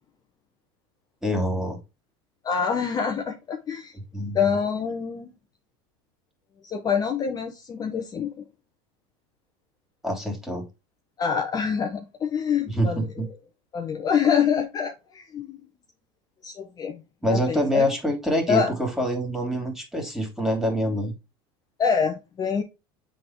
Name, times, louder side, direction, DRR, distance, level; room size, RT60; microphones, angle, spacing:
voice 1, 1.2-1.8 3.9-4.5 10.0-10.6 12.7-13.3 17.2-21.2, equal, ahead, 2.9 m, -26 dB
voice 2, 2.4-4.0 4.3-5.3 6.6-8.4 11.2-13.1 13.7-15.6 16.4-17.0 17.3-17.9 18.5-18.7 21.8-22.6, left 7 dB, 30° left, 1.0 m, -26 dB
7.6 x 3.8 x 4.6 m
supercardioid pair, 105°, 13 cm